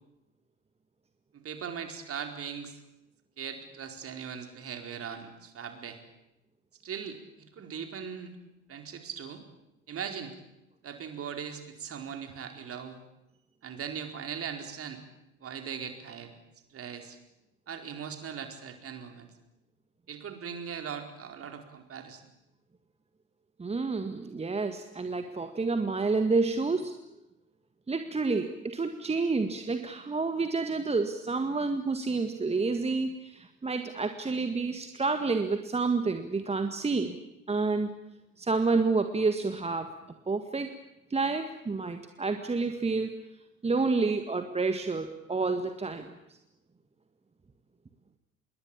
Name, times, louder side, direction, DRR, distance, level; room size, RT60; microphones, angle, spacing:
voice 1, 1.3-2.8 3.4-6.0 6.8-8.3 8.7-9.4 9.9-10.3 10.8-13.0 13.6-15.0 15.4-16.4 16.7-17.2 17.7-19.3 20.1-22.2, right 7 dB, 35° right, 6 dB, 4.7 m, -39 dB
voice 2, 23.6-26.9 27.9-37.2 37.5-38.0 38.4-39.9 40.3-40.8 41.1-43.2 43.6-46.1, right 3 dB, 15° right, 8 dB, 1.9 m, -29 dB
27.0 x 22.5 x 8.7 m, 0.91 s
figure-of-eight pair, 65°, 39 cm